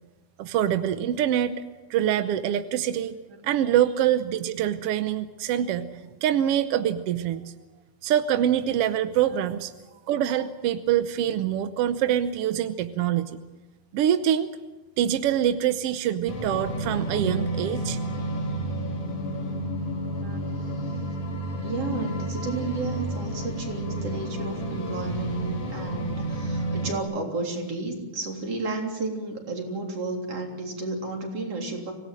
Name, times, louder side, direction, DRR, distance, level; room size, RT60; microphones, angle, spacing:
voice 1, 0.4-1.5 1.9-3.2 3.4-7.5 8.0-9.7 10.1-13.4 13.9-14.5 15.0-18.0, right 10 dB, 70° right, 10 dB, 1.5 m, -25 dB
sound 1, 16.3-27.0, right 1 dB, 50° left, 4.7 m, -31 dB
voice 2, 21.6-31.9, right 3 dB, 50° right, 1 dB, 4.4 m, -32 dB
26.0 x 17.5 x 7.7 m, 1.2 s
omnidirectional pair, 3.5 m